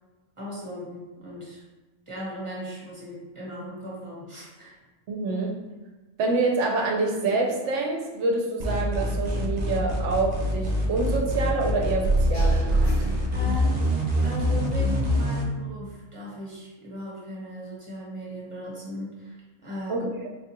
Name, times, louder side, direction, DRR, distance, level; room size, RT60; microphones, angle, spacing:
voice 1, 0.4-1.6 2.1-4.7 13.3-13.8 14.2-20.1, left 1 dB, 25° right, -6 dB, 1.0 m, -37 dB
voice 2, 5.1-5.6 6.2-12.9 19.9-20.3, right 3 dB, 65° right, -1 dB, 0.9 m, -26 dB
sound 1, 8.6-15.4, equal, 85° right, 0.3 m, -24 dB
sound 2, 12.3-14.1, equal, 55° left, 1.2 m, -44 dB
4.4 x 2.3 x 2.9 m, 1.2 s
omnidirectional pair, 1.4 m